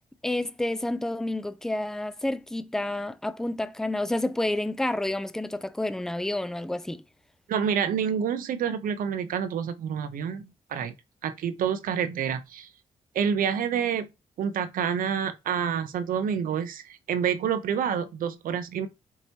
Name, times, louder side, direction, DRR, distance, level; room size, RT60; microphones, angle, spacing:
voice 1, 0.2-7.0, left 1 dB, 5° left, 0.4 m, -29 dB
voice 2, 7.5-10.4 10.7-10.9 11.2-12.7 13.1-14.1 14.4-18.9, right 8 dB, 85° right, 0.6 m, -28 dB
4.6 x 2.9 x 2.8 m
cardioid pair, 75°, 14 cm